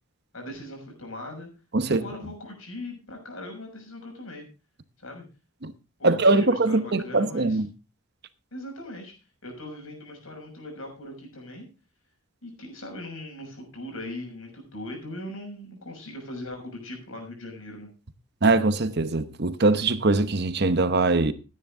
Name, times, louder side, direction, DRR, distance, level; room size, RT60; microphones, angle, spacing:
voice 1, 0.3-1.5 1.9-4.4 5.0-5.2 6.0-7.6 8.5-9.1 9.4-11.7 12.4-17.9, left 1 dB, 80° left, 6.4 m, -39 dB
voice 2, 6.0-7.7 18.4-21.3, right 3 dB, 50° right, 0.9 m, -22 dB
16.0 x 9.8 x 3.7 m
head